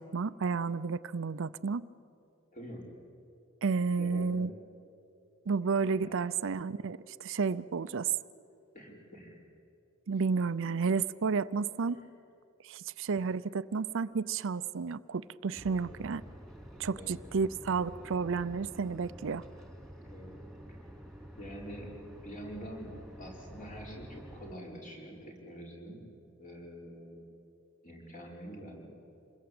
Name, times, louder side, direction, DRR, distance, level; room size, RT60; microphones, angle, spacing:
voice 1, 0.0-1.9 3.6-4.5 5.5-8.1 10.1-12.0 12.6-16.2 16.8-19.4, right 5 dB, 65° right, 15 dB, 0.5 m, -31 dB
voice 2, 2.5-2.9 4.0-4.5 6.0-6.3 8.7-9.4 11.9-12.1 15.7-15.8 17.0-17.2 20.1-20.3 21.4-21.9 22.2-22.9 23.2-26.0 26.4-27.3 27.8-28.8, equal, 40° left, -1 dB, 5.4 m, -46 dB
sound 1, 15.5-24.5, equal, ahead, 3.0 m, -49 dB
27.0 x 21.5 x 8.7 m, 2.6 s
head